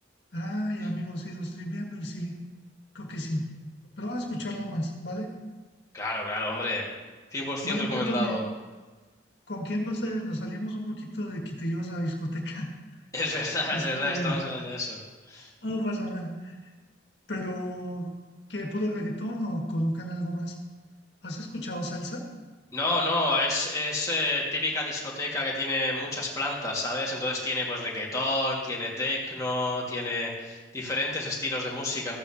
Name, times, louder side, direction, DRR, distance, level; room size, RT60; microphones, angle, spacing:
voice 1, 0.3-2.3 2.9-3.5 4.0-5.3 7.6-8.4 9.5-12.7 13.7-14.4 15.6-16.5 17.3-18.1 18.5-20.5 21.2-22.2, equal, 70° left, 0 dB, 1.8 m, -32 dB
voice 2, 5.9-6.9 7.3-8.4 13.1-15.0 15.3-15.5 22.7-32.2, left 2 dB, 20° left, -3 dB, 1.8 m, -29 dB
14.5 x 8.7 x 2.8 m, 1.3 s
head